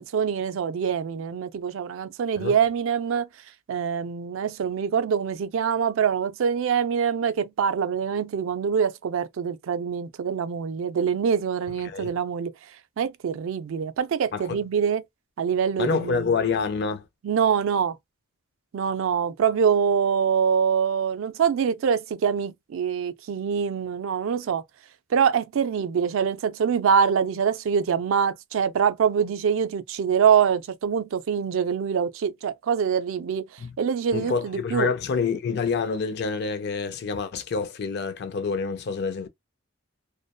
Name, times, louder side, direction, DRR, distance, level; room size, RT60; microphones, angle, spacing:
voice 1, 0.0-3.3 3.7-12.5 13.0-15.0 15.4-16.3 17.2-18.0 18.7-24.6 25.1-33.5 33.8-34.9, right 7 dB, 70° right, 0.3 m, -24 dB
voice 2, 11.8-12.2 14.3-14.6 15.8-17.0 33.6-33.7 34.1-39.3, left 5 dB, 50° left, 0.4 m, -27 dB
2.5 x 2.1 x 2.2 m
head